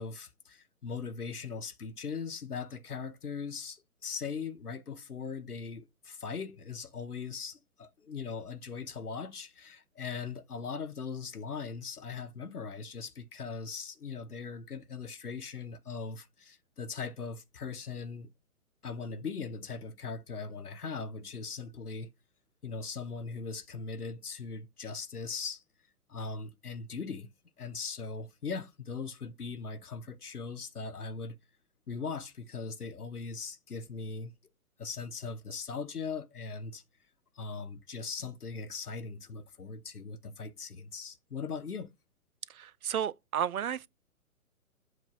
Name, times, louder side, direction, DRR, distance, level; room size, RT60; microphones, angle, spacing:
voice 1, 0.0-18.3 18.8-22.1 22.6-25.6 26.1-27.3 27.6-31.4 31.9-34.3 34.8-36.8 37.3-41.9, left 5 dB, 85° left, 0.9 m, -40 dB
voice 2, 42.5-43.9, right 9 dB, 70° right, 0.6 m, -33 dB
7.8 x 2.7 x 5.7 m
figure-of-eight pair, 125°, 44 cm